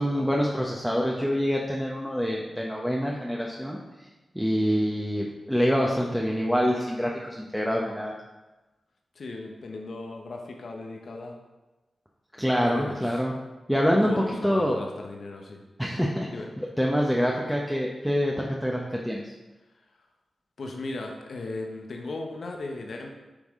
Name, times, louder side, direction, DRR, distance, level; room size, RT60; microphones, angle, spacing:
voice 1, 0.0-3.8 4.3-8.1 12.4-13.3 13.7-14.8 15.8-16.3 16.8-19.3, equal, ahead, -2 dB, 0.9 m, -26 dB
voice 2, 9.1-11.4 12.6-13.3 13.9-15.6 16.3-16.5 20.6-23.1, left 2 dB, 70° left, 2 dB, 0.8 m, -37 dB
9.7 x 3.5 x 3.6 m, 1.1 s
cardioid pair, 50°, 0 cm